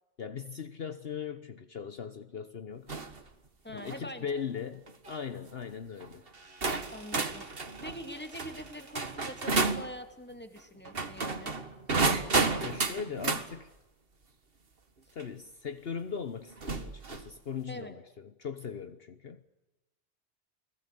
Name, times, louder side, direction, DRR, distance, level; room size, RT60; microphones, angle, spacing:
voice 1, 0.2-2.9 3.7-6.3 12.6-13.7 15.1-19.4, left 7 dB, 55° left, 1.3 m, -39 dB
sound 1, 2.9-3.2 3.7-4.0 4.9-5.1 6.0-6.1 6.6-9.9 10.8-13.5 15.2-15.3 16.6-17.3, right 3 dB, 50° right, 1.9 m, -31 dB
voice 2, 3.6-4.3 6.9-7.5 7.8-11.6 17.7-18.0, equal, 10° left, 2.6 m, -44 dB
29.5 x 19.5 x 8.4 m
omnidirectional pair, 1.2 m